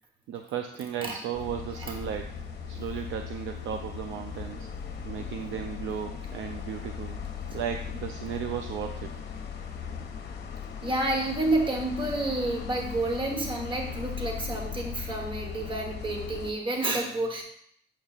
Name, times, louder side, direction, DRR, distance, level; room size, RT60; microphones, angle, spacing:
voice 1, 0.3-2.4 2.7-4.7 5.0-7.2 7.5-9.1, right 8 dB, 75° right, 5 dB, 0.5 m, -35 dB
sound 1, 1.3-16.5, left 7 dB, 55° left, 0.9 m, -38 dB
voice 2, 10.8-17.4, right 2 dB, 25° right, 2 dB, 1.2 m, -29 dB
7.2 x 5.4 x 2.4 m, 0.67 s
cardioid pair, 90°, 20 cm